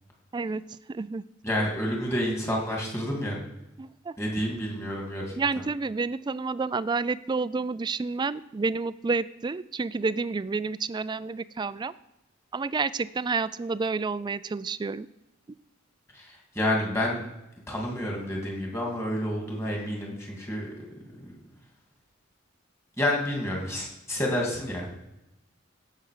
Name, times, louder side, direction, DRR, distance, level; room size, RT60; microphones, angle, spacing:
voice 1, 0.3-1.3 3.8-4.2 5.4-11.9 12.5-15.1, right 4 dB, 20° right, 17 dB, 0.3 m, -29 dB
voice 2, 1.4-3.4 4.2-5.3 16.1-17.2 17.7-20.9 21.2-21.4 23.0-25.0, left 1 dB, 15° left, -1 dB, 2.5 m, -29 dB
16.5 x 6.7 x 5.0 m, 0.92 s
head